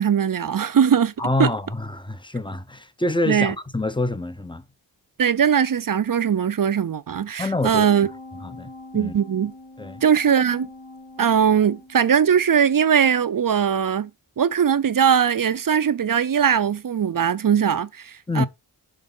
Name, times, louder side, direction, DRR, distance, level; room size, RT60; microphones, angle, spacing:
voice 1, 0.0-1.1 1.4-1.5 3.3-3.5 5.2-8.1 8.9-9.5 10.0-10.7 11.2-14.1 14.4-18.5, right 8 dB, 50° right, 0.5 m, -20 dB
voice 2, 1.2-4.6 7.4-7.9 8.4-9.2 9.8-10.0 18.3-18.5, left 2 dB, 10° left, 0.6 m, -26 dB
sound 1, 7.8-12.4 12.8-12.9, left 2 dB, 80° left, 2.2 m, -43 dB
6.5 x 4.0 x 5.5 m
wide cardioid pair, 65°, 44 cm